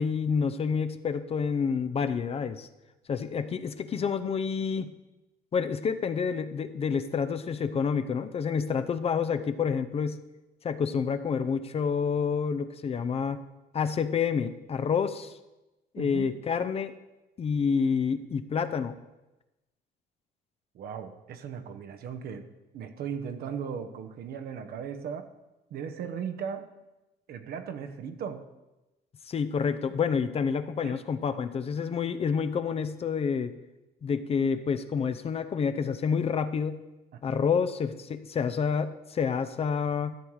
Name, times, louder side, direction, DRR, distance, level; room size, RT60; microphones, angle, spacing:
voice 1, 0.0-2.7 3.1-4.9 5.5-10.2 10.6-13.4 13.7-15.3 15.9-16.9 17.4-18.9 29.3-33.5 34.0-36.8 37.2-40.1, left 6 dB, 35° left, 10 dB, 0.6 m, -28 dB
voice 2, 16.0-16.4 20.7-25.3 25.7-26.7 27.3-28.5 30.8-31.0 37.1-37.4, right 7 dB, 65° right, 7 dB, 1.0 m, -37 dB
13.5 x 7.1 x 4.7 m, 1.0 s
cardioid pair, 110°, 17 cm